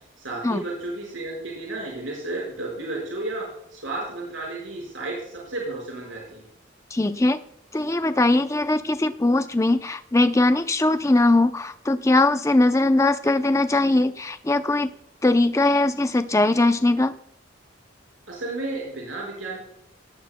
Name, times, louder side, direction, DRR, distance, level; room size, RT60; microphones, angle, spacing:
voice 1, 0.2-3.5 3.7-6.4 18.3-19.6, right 2 dB, 75° right, -3 dB, 5.1 m, -32 dB
voice 2, 6.9-7.4 7.7-14.9 15.2-17.1, left 2 dB, 15° left, 10 dB, 0.5 m, -20 dB
18.5 x 13.0 x 2.2 m, 0.76 s
head